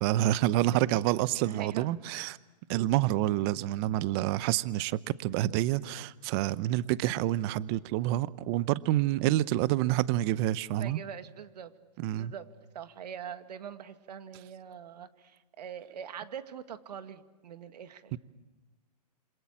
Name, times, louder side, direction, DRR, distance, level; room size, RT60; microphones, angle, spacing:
voice 1, 0.0-2.4 2.7-11.0 12.0-12.3 18.1-18.2, right 15 dB, 35° right, 18 dB, 0.8 m, -28 dB
voice 2, 0.5-1.0 1.4-2.0 10.8-11.7 12.2-12.5 12.7-18.2, right 8 dB, 70° right, 10 dB, 2.0 m, -43 dB
27.5 x 26.5 x 7.4 m, 1.2 s
hypercardioid pair, 135°, 21 cm